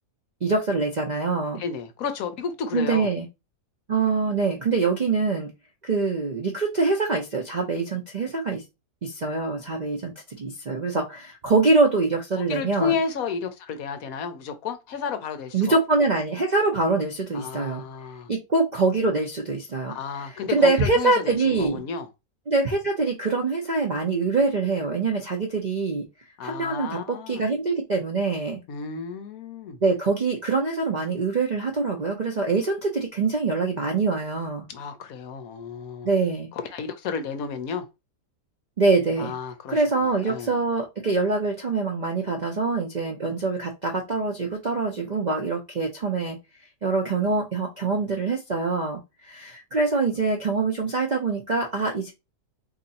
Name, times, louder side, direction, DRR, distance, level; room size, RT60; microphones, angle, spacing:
voice 1, 0.4-1.6 2.7-3.3 3.9-5.5 5.8-8.6 9.0-13.0 15.5-17.8 18.3-20.0 20.5-21.8 22.5-26.0 26.4-28.6 29.8-34.6 36.0-36.5 38.8-39.3 39.7-46.4 46.8-52.1, right 3 dB, 90° right, 0.3 m, -24 dB
voice 2, 1.6-3.1 12.5-15.8 17.3-18.3 19.9-22.1 26.4-27.4 28.7-29.8 34.7-36.1 36.5-37.9 39.2-40.5, left 6 dB, 70° left, 1.0 m, -32 dB
2.9 x 2.6 x 4.0 m
omnidirectional pair, 1.8 m